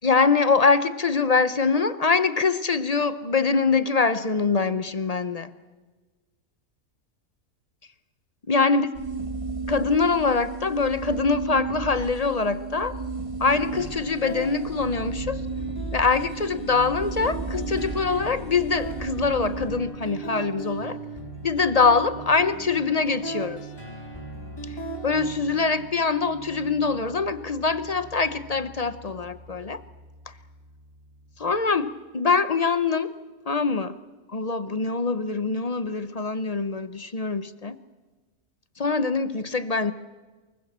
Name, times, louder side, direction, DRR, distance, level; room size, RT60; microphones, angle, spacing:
voice 1, 0.0-5.5 8.5-8.9 9.7-13.0 13.4-15.4 15.9-21.0 21.4-23.6 25.0-29.8 31.4-33.2 33.5-34.0 34.3-37.8 38.8-39.9, left 4 dB, 35° left, 14 dB, 0.6 m, -24 dB
sound 1, 8.9-19.8, right 3 dB, 20° right, 1.6 m, -34 dB
sound 2, 13.7-31.7, right 3 dB, 15° left, 4.3 m, -38 dB
24.0 x 22.0 x 7.3 m, 1.3 s
omnidirectional pair, 1.5 m